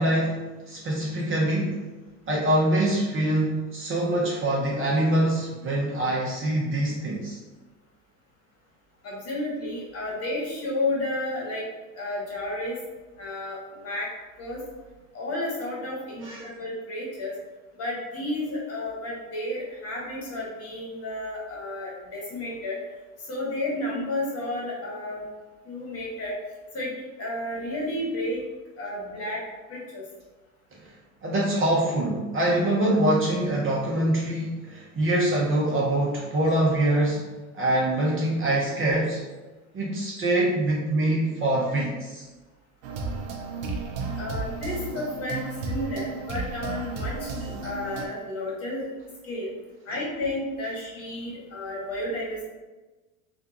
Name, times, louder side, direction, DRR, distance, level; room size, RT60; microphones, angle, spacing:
voice 1, 0.0-1.8 2.3-7.4 16.2-16.5 31.2-37.2 37.5-39.2 39.7-42.2, right 1 dB, 30° right, -4 dB, 0.8 m, -24 dB
voice 2, 9.0-11.6 12.0-12.8 13.2-14.1 14.4-14.6 15.1-17.3 17.8-22.8 23.3-25.2 25.6-26.3 26.7-26.9 27.2-28.4 28.8-29.4 29.7-30.0 44.1-48.9 49.2-49.5 49.9-52.4, left 1 dB, 35° left, -4 dB, 1.4 m, -32 dB
sound 1, 42.8-48.1, right 3 dB, 65° right, 0.7 m, -33 dB
3.5 x 2.4 x 2.8 m, 1.2 s
hypercardioid pair, 95°, 42 cm